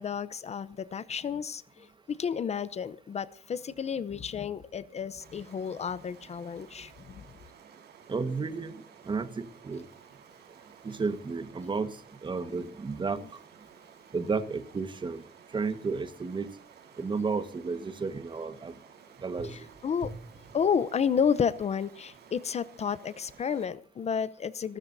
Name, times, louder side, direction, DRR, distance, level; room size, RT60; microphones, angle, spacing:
voice 1, 0.0-7.2 13.2-13.3 19.4-20.1 20.5-24.8, left 7 dB, 40° left, 16 dB, 0.7 m, -31 dB
Stream, 5.2-23.7, right 7 dB, 75° right, 4.9 m, -55 dB
voice 2, 8.1-9.8 10.8-13.2 14.1-15.2 15.5-16.5 17.0-18.7 19.2-19.7 20.0-20.1, right 4 dB, 30° right, 11 dB, 1.5 m, -32 dB
28.5 x 13.0 x 2.7 m, 0.42 s
cardioid pair, 150°, 17 cm